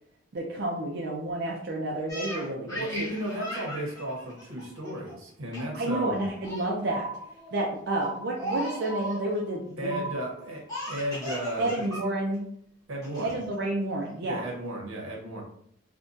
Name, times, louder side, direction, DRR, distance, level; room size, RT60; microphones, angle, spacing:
voice 1, 0.3-3.1 5.7-7.1 7.5-10.0 11.6-12.5 13.2-14.4, right 1 dB, 55° right, -1 dB, 0.4 m, -30 dB
Laughter, 2.1-5.1 5.5-5.8 6.1-6.8 7.2-7.6 8.3-9.3 10.7-12.0 12.3-12.4 13.0-13.5, left 1 dB, 15° left, 1.1 m, -37 dB
voice 2, 2.7-6.2 9.8-11.9 12.9-13.4 14.2-15.4, right 1 dB, 90° right, -1 dB, 1.0 m, -34 dB
sound 1, 5.9-6.6 6.9-7.6 7.9-8.6 8.9-9.6 9.9-10.6, right 3 dB, 10° right, 0.7 m, -38 dB
3.5 x 2.2 x 2.6 m, 0.67 s
head